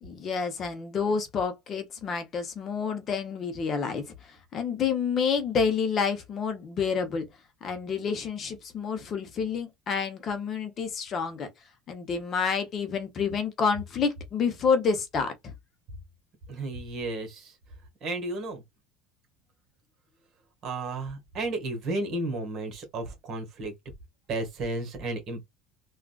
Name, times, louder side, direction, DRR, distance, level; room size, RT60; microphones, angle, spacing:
voice 1, 0.0-4.0 4.5-7.3 7.6-11.5 11.9-15.5, left 6 dB, 35° left, 0.8 m, -28 dB
voice 2, 16.5-17.5 18.0-18.6 20.6-23.7 24.3-25.4, right 2 dB, 40° right, 1.5 m, -33 dB
3.7 x 2.4 x 2.3 m
cardioid pair, 145°, 0 cm